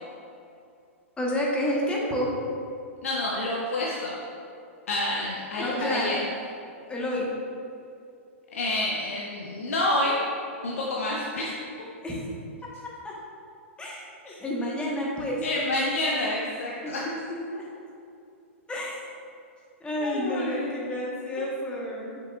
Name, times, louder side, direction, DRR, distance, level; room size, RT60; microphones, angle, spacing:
voice 1, 1.2-2.3 5.6-6.1 6.9-7.3 12.0-12.2 13.0-13.2 13.8-15.4 16.8-17.6 18.7-19.0 19.8-22.2, equal, 15° left, -4 dB, 1.2 m, -30 dB
voice 2, 3.0-4.1 4.9-6.2 8.5-10.3 10.6-11.5 14.3-14.4 15.4-17.0 20.0-20.8, left 1 dB, 75° left, -4 dB, 0.8 m, -28 dB
6.8 x 5.9 x 2.4 m, 2.5 s
hypercardioid pair, 110°, 7 cm